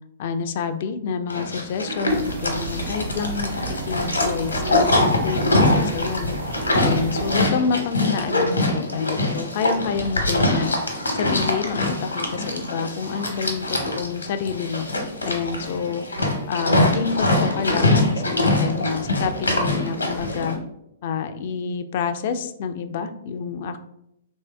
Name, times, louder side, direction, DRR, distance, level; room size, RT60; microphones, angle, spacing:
voice 1, 0.2-6.4 6.8-10.8 11.1-14.9 15.2-16.0 16.5-20.6 21.0-23.8, left 6 dB, 50° left, 9 dB, 0.3 m, -28 dB
Livestock farm animals working animals, 1.3-20.5, left 2 dB, 90° left, 0.8 m, -23 dB
sound 1, 2.1-7.5, right 3 dB, 70° right, 0.8 m, -33 dB
3.2 x 2.6 x 3.3 m, 0.80 s
figure-of-eight pair, 115°, 0 cm